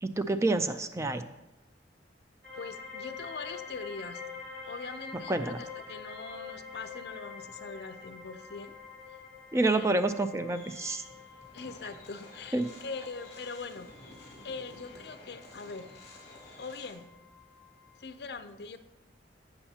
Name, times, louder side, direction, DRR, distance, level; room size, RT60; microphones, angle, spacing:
voice 1, 0.0-1.2 5.3-5.6 9.5-11.0 12.5-12.7, right 2 dB, 15° right, 10 dB, 0.4 m, -28 dB
sound 1, 2.4-18.1, left 5 dB, 55° right, 2.7 m, -47 dB
voice 2, 2.5-4.2 4.6-8.7 9.6-9.9 11.5-13.9 14.4-15.9 16.6-17.1 18.0-18.8, left 4 dB, 60° left, 10 dB, 0.5 m, -42 dB
sound 2, 10.5-16.9, left 1 dB, 35° left, 2.4 m, -52 dB
11.5 x 8.0 x 2.8 m, 1.0 s
head